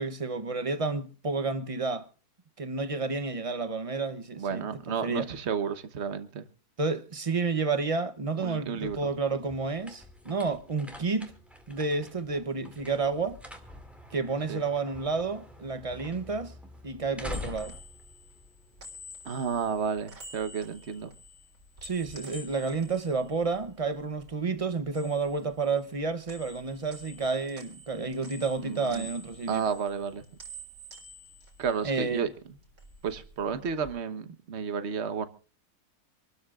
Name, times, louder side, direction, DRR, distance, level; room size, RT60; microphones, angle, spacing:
voice 1, 0.0-2.1 2.6-5.3 6.8-11.3 11.7-13.4 14.1-16.5 16.8-17.8 21.8-29.7 31.8-32.3, right 4 dB, 35° right, 0.6 m, -30 dB
voice 2, 4.4-6.5 8.4-9.1 14.5-14.6 19.2-21.1 28.6-29.1 29.5-30.2 31.6-32.3 33.0-35.2, right 6 dB, 50° right, 1.3 m, -32 dB
sound 1, 8.6-19.2, left 1 dB, ahead, 2.1 m, -46 dB
sound 2, 17.0-24.3 24.6-26.0 26.3-32.3 32.6-33.9, equal, 70° right, 4.0 m, -49 dB
26.5 x 13.0 x 2.4 m
omnidirectional pair, 1.6 m